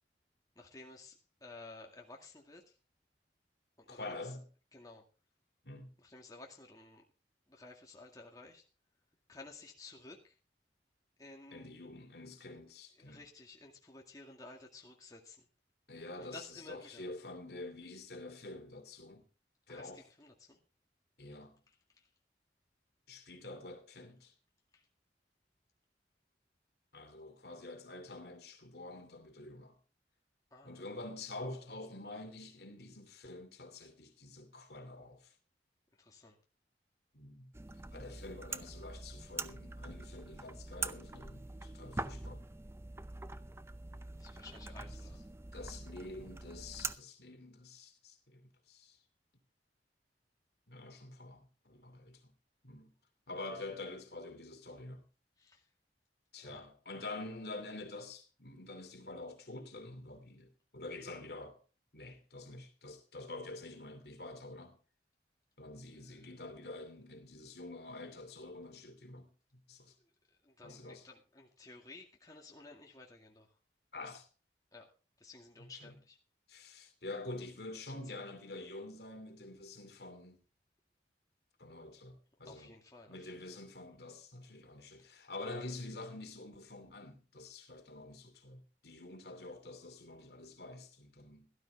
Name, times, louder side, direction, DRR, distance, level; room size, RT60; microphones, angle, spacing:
voice 1, 0.6-2.8 3.8-4.3 4.7-5.0 6.0-7.0 7.5-8.6 9.3-10.4 11.2-11.7 13.0-15.5 16.2-17.1 19.7-20.6 21.9-22.1 24.7-24.9 30.5-30.8 36.0-36.4 44.2-45.2 55.4-55.7 56.4-56.7 66.0-66.3 70.4-73.5 74.7-74.9 75.2-76.2 77.9-78.0 82.4-83.3 84.9-85.3, left 3 dB, 20° left, 2.0 m, -54 dB
voice 2, 3.9-4.4 5.6-5.9 11.5-13.2 15.9-19.3 19.7-20.0 21.2-21.6 23.1-24.3 26.9-29.8 30.6-35.3 37.1-37.5 37.9-42.4 44.8-44.9 45.5-49.0 50.7-52.3 52.6-52.9 53.3-55.0 56.3-61.6 61.9-64.8 65.6-69.9 70.6-71.0 73.9-74.3 75.6-75.9 76.5-80.4 81.6-82.7 83.1-91.5, left 2 dB, 60° left, 2.7 m, -47 dB
sound 1, 37.5-47.0, right 3 dB, 15° right, 0.5 m, -44 dB
17.0 x 12.5 x 3.4 m
head